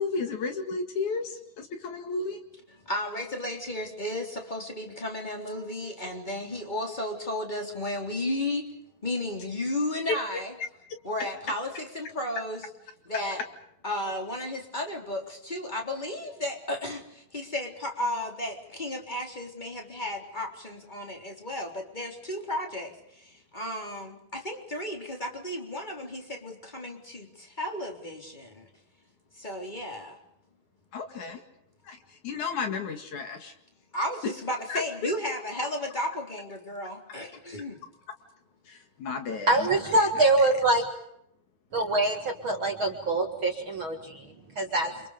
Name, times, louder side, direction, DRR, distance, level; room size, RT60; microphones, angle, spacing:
voice 1, 0.0-2.4 30.9-31.4 31.8-33.5 34.7-35.1 38.6-40.5, left 4 dB, 60° left, 6 dB, 3.3 m, -33 dB
voice 2, 2.8-8.7 9.0-10.5 11.0-12.6 13.0-13.4 13.8-28.7 29.3-30.2 33.9-37.8, left 1 dB, 15° left, 2 dB, 3.6 m, -34 dB
voice 3, 39.5-40.8 41.7-44.3 44.6-44.9, right 2 dB, 45° right, 3 dB, 2.2 m, -24 dB
30.0 x 26.0 x 5.1 m, 0.77 s
omnidirectional pair, 4.0 m